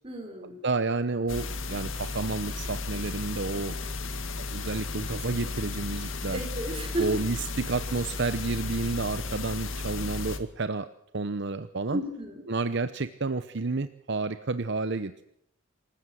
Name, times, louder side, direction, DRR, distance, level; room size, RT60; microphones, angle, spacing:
voice 1, 0.0-0.6 6.3-7.2 11.9-12.4, right 1 dB, 25° right, 4 dB, 5.0 m, -33 dB
voice 2, 0.6-3.8 4.4-6.5 7.0-10.9 11.1-12.0 12.5-15.2, right 3 dB, 55° right, 12 dB, 0.8 m, -30 dB
sound 1, 1.3-10.4, left 3 dB, 70° left, 2.2 m, -34 dB
27.0 x 14.5 x 8.0 m, 0.73 s
head